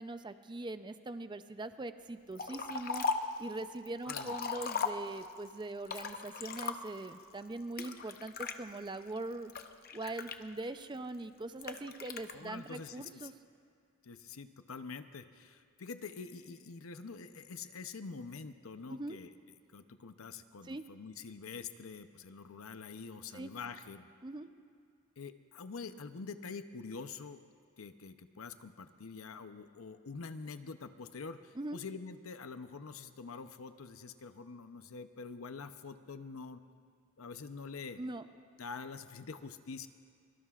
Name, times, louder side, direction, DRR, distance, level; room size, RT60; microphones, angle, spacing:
voice 1, 0.0-3.0 3.4-9.5 9.9-13.3 18.9-19.2 20.6-20.8 23.3-23.5 24.2-24.5 31.5-31.8 38.0-38.3, right 2 dB, 20° right, 10 dB, 0.5 m, -42 dB
Liquid, 2.4-3.4 3.9-5.4 5.8-7.1 7.8-8.6 9.2-10.8 11.6-12.3, left 5 dB, 45° left, 0.8 m, -37 dB
voice 2, 4.0-4.4 12.3-13.3 14.0-19.3 19.7-24.1 25.2-27.4 27.8-36.6 37.2-38.0 38.6-39.9, left 4 dB, 90° left, 10 dB, 0.7 m, -46 dB
23.5 x 23.5 x 2.4 m, 2.3 s
head